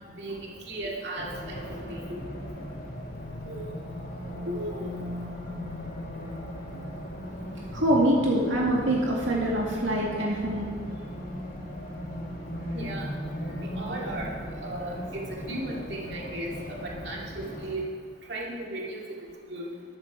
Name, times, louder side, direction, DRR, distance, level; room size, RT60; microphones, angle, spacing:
voice 1, 0.2-2.0 3.5-3.7 4.4-4.9 9.3-9.4 12.7-13.1 13.6-14.3 14.6-17.9 18.3-19.0 19.5-19.7, right 1 dB, 60° right, -3 dB, 2.4 m, -36 dB
Race car auto racing, 1.2-17.8, equal, 50° left, 2.4 m, -37 dB
voice 2, 7.7-10.7, right 1 dB, 80° right, -3 dB, 2.2 m, -25 dB
13.5 x 12.0 x 4.8 m, 2.1 s
head